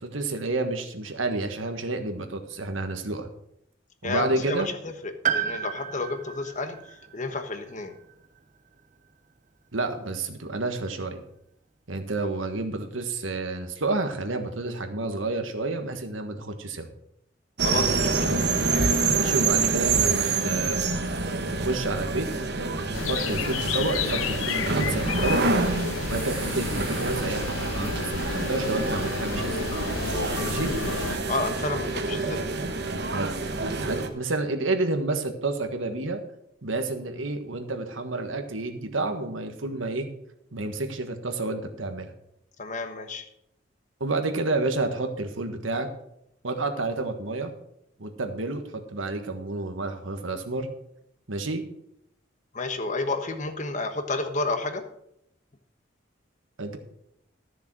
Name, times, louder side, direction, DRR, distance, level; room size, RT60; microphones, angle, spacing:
voice 1, 0.0-3.3 4.0-4.7 9.7-11.2 11.9-16.9 19.1-20.9 21.5-22.3 23.1-25.4 26.0-29.7 30.4-30.7 33.1-36.2 36.6-40.1 40.5-42.1 44.0-45.9 46.4-47.5 48.0-50.7 51.3-51.6 56.6-56.8, right 2 dB, 85° right, 7 dB, 1.5 m, -30 dB
voice 2, 4.0-7.9 17.6-18.4 31.3-32.4 42.6-43.2 52.5-54.8, left 3 dB, 40° left, 7 dB, 1.2 m, -31 dB
Piano, 5.2-9.1 9.4-9.5 10.6-10.7, right 8 dB, 40° right, 0.7 m, -33 dB
sound 1, 17.6-34.1, right 3 dB, 55° right, 1.2 m, -27 dB
sound 2, 22.9-31.2, left 7 dB, 90° left, 0.5 m, -32 dB
13.0 x 7.0 x 6.1 m, 0.77 s
head